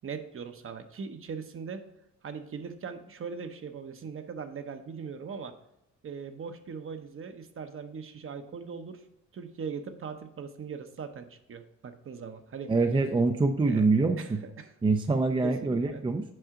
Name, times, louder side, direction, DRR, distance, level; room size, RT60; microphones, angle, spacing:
voice 1, 0.0-1.8 2.2-5.5 6.0-9.0 9.3-12.7 13.7-13.9 14.2-14.7 15.4-16.0, right 6 dB, 45° right, 7 dB, 0.9 m, -40 dB
voice 2, 12.7-14.4 14.8-16.2, right 3 dB, 15° right, 6 dB, 0.5 m, -25 dB
7.8 x 5.6 x 3.7 m, 0.84 s
cardioid pair, 90°, 30 cm